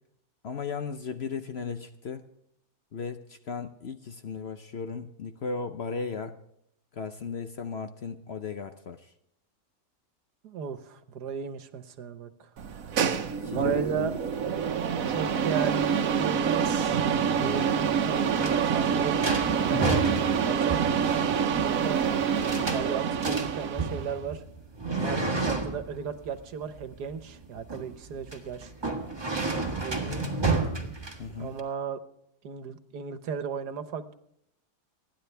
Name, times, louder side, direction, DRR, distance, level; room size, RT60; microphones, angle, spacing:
voice 1, 0.4-2.2 2.9-6.4 6.9-9.1 13.4-14.2 17.4-17.7 25.0-25.3 31.2-31.5, left 5 dB, 55° left, 9 dB, 0.8 m, -36 dB
voice 2, 10.4-12.5 13.4-14.1 15.0-16.7 17.2-20.0 20.4-20.8 21.6-22.0 22.6-24.4 24.9-28.7 29.5-30.3 31.4-32.0 32.4-34.1, right 7 dB, 80° right, 11 dB, 1.7 m, -35 dB
sound 1, 12.6-24.2, right 7 dB, 60° right, 1.3 m, -27 dB
sound 2, 17.9-31.6, right 3 dB, 15° right, 1.6 m, -32 dB
30.0 x 10.0 x 3.4 m, 0.75 s
omnidirectional pair, 1.7 m